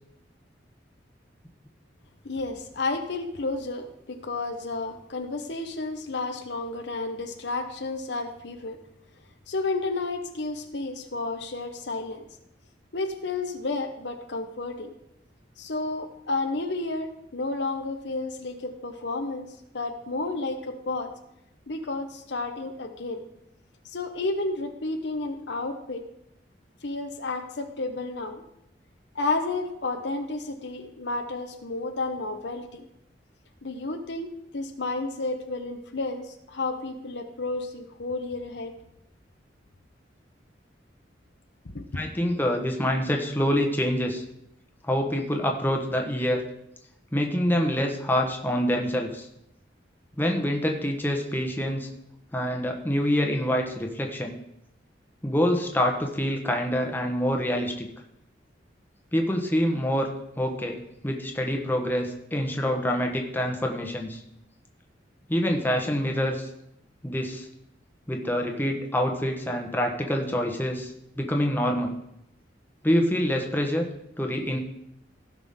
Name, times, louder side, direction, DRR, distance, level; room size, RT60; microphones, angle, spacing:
voice 1, 2.2-8.8 9.5-12.3 12.9-14.9 15.6-21.1 21.7-23.3 23.8-26.1 26.8-28.4 29.1-32.8 33.6-38.7 41.6-42.0, left 3 dB, 70° left, 6 dB, 0.9 m, -31 dB
voice 2, 41.9-44.2 44.9-46.4 47.1-49.3 50.2-51.9 52.3-54.4 55.2-57.9 59.1-60.1 60.4-64.2 65.3-66.5 67.0-67.5 68.1-72.0 72.8-73.9 74.2-74.6, equal, 10° left, 1 dB, 1.1 m, -26 dB
16.0 x 6.0 x 3.6 m, 0.81 s
head